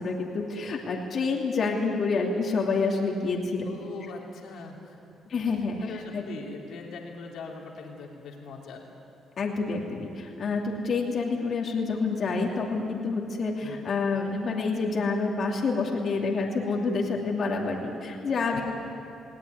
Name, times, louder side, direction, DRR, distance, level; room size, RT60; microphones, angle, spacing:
voice 1, 0.0-3.6 5.3-5.8 6.1-6.2 9.4-18.6, left 4 dB, 55° left, -1 dB, 2.7 m, -28 dB
voice 2, 3.6-5.0 5.5-8.8 13.6-13.9 18.5-18.6, left 4 dB, 75° left, 0 dB, 3.1 m, -41 dB
19.5 x 17.5 x 9.7 m, 2.6 s
cardioid pair, 90°, 0 cm